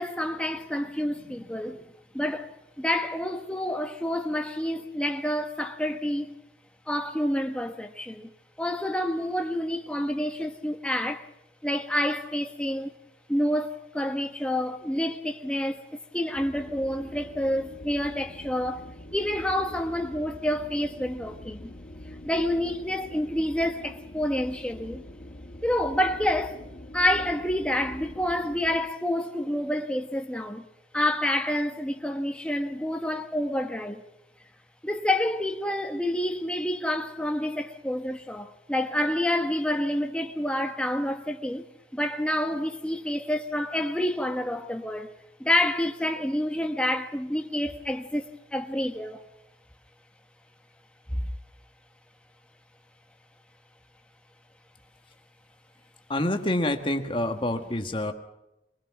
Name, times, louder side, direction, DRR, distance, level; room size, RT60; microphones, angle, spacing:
voice 1, 0.0-1.8 2.1-6.3 6.9-8.3 8.6-11.3 11.6-12.9 13.3-15.8 16.1-18.8 19.1-21.7 22.2-25.0 25.6-26.6 26.9-30.7 30.9-34.0 34.8-41.6 41.9-45.1 45.4-48.2 48.5-49.2 51.1-51.2, left 1 dB, 5° left, 1.2 m, -28 dB
sound 1, 16.3-28.8, left 1 dB, 45° left, 1.2 m, -44 dB
voice 2, 56.1-58.1, left 1 dB, 30° left, 1.7 m, -27 dB
23.0 x 20.0 x 6.1 m
head